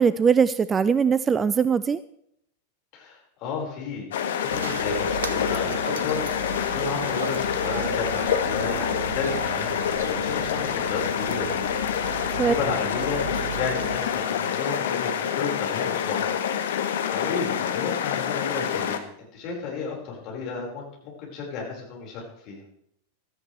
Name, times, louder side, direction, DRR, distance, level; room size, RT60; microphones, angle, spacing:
voice 1, 0.0-2.0 12.4-12.5, right 6 dB, 20° right, 16 dB, 0.4 m, -21 dB
voice 2, 2.9-11.9 12.3-16.3 17.1-22.6, left 4 dB, 40° left, -1 dB, 5.0 m, -33 dB
sound 1, 4.1-19.0, left 9 dB, 60° left, 1.1 m, -27 dB
sound 2, 4.5-14.1, right 7 dB, 65° right, 0.9 m, -36 dB
15.5 x 13.5 x 3.3 m, 0.72 s
figure-of-eight pair, 90°, 0 cm